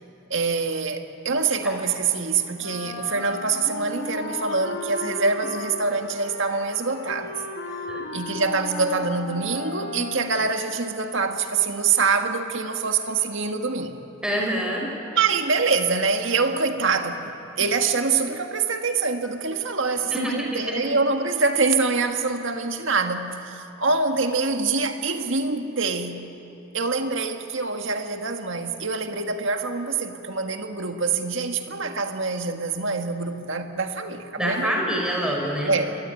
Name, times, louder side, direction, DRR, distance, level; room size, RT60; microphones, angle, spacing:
voice 1, 0.3-7.4 8.1-14.0 15.1-26.3 26.7-34.8 35.7-36.0, right 4 dB, 65° right, 5 dB, 1.9 m, -25 dB
Wind instrument woodwind instrument, 2.6-10.7, left 3 dB, 75° left, 4.2 m, -35 dB
voice 2, 14.2-14.8 20.1-20.6 34.4-35.7, equal, 5° right, -2 dB, 5.7 m, -26 dB
26.0 x 22.5 x 9.4 m, 3.0 s
head